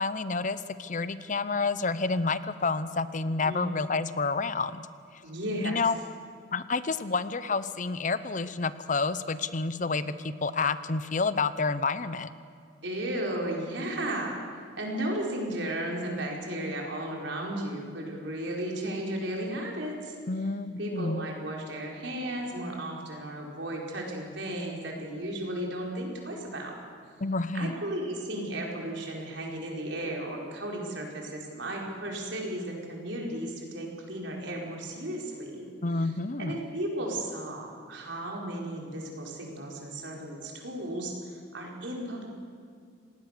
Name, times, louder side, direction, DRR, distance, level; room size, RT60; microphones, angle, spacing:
voice 1, 0.0-4.8 5.6-6.0 6.5-12.3 20.3-21.2 27.2-27.7 35.8-36.6, left 4 dB, 40° left, 14 dB, 0.7 m, -29 dB
voice 2, 3.4-3.8 5.2-5.8 12.8-14.4 14.8-20.1 20.8-26.7 27.5-35.7 35.9-36.1 36.4-42.3, right 1 dB, 70° right, -1 dB, 4.8 m, -34 dB
27.0 x 19.0 x 6.8 m, 2.2 s
head